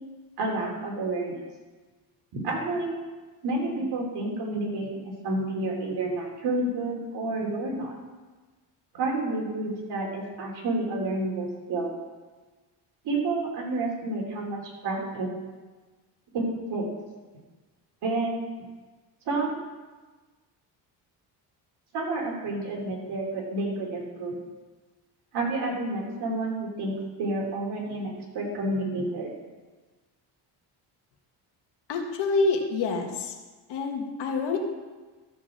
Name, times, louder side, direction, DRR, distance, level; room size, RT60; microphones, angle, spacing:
voice 1, 0.4-1.3 2.3-3.0 3.4-4.9 5.2-7.9 8.9-11.9 13.0-15.3 16.3-16.4 16.7-16.9 18.0-18.4 19.2-19.6 21.9-24.4 25.3-29.3, right 2 dB, 65° right, -2 dB, 3.3 m, -29 dB
voice 2, 31.9-33.4 33.7-34.6, left 3 dB, 70° left, 3 dB, 1.7 m, -27 dB
13.0 x 4.8 x 7.3 m, 1.3 s
cardioid pair, 125°, 43 cm